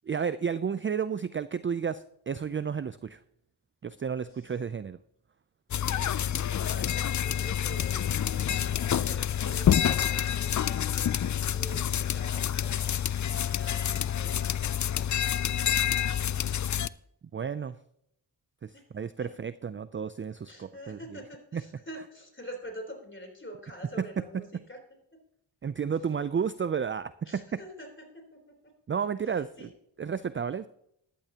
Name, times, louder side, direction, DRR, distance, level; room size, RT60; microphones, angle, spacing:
voice 1, 0.1-3.2 3.8-5.0 17.3-17.8 18.6-21.0 21.5-21.6 25.6-27.4 28.9-29.7 30.0-30.7, right 7 dB, 30° right, 15 dB, 0.4 m, -32 dB
sound 1, 5.7-16.9, left 9 dB, 40° left, 0.4 m, -28 dB
voice 2, 5.8-6.9 7.2-8.1 8.4-12.9 13.4-15.1 18.7-18.9 19.2-19.3 20.5-24.8 27.3-27.9 28.1-28.5 29.3-29.7, equal, 25° left, 3 dB, 3.7 m, -46 dB
14.0 x 12.0 x 2.9 m, 0.75 s
cardioid pair, 60°, 47 cm